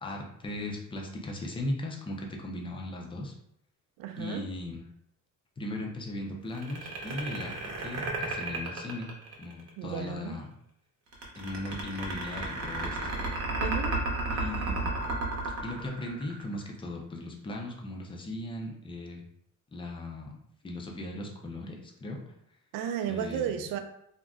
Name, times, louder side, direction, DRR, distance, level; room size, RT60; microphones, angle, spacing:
voice 1, 0.0-3.3 4.2-4.8 5.6-9.1 9.4-10.5 11.4-13.0 14.3-15.0 15.6-19.3 19.7-20.3 20.6-22.2 23.1-23.6, left 1 dB, 15° left, 0 dB, 0.4 m, -37 dB
voice 2, 4.0-4.4 9.8-10.4 13.6-14.0 22.7-23.8, right 9 dB, 80° right, 7 dB, 0.5 m, -33 dB
sound 1, 6.5-9.7 11.1-16.6, right 3 dB, 45° right, 0.8 m, -33 dB
2.4 x 2.1 x 3.5 m, 0.74 s
cardioid pair, 140°, 33 cm